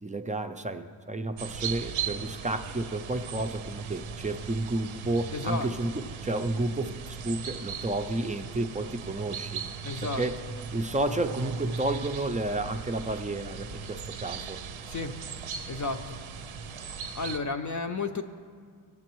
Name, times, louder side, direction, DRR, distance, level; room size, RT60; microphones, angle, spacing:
voice 1, 0.0-9.6 10.0-10.4 10.7-14.6, right 2 dB, 15° right, 8 dB, 0.4 m, -31 dB
sound 1, 1.4-17.4, right 6 dB, 85° right, 0.7 m, -38 dB
voice 2, 5.3-5.7 9.8-10.2 14.9-15.1 15.7-16.2 17.1-18.2, left 4 dB, 40° left, 5 dB, 0.5 m, -32 dB
17.0 x 7.7 x 3.0 m, 2.1 s
wide cardioid pair, 95°, 47 cm